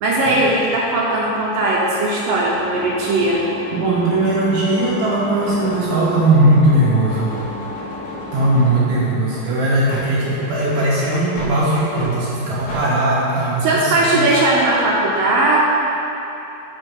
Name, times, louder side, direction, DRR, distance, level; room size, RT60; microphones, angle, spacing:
voice 1, 0.0-3.4 13.6-15.6, right 2 dB, 85° right, -4 dB, 1.9 m, -18 dB
sound 1, 2.6-8.8, left 2 dB, 85° left, 2.2 m, -32 dB
voice 2, 3.7-7.3 8.3-14.3, right 1 dB, 65° right, -8 dB, 2.0 m, -18 dB
sound 2, 3.9-4.1 4.8-5.1 5.4-8.8 9.3-9.4 9.9-10.1 10.7-10.9 11.3-11.5 11.9-12.1 12.7-12.8, equal, 65° left, 3.1 m, -35 dB
6.9 x 6.4 x 5.2 m, 2.9 s
omnidirectional pair, 5.1 m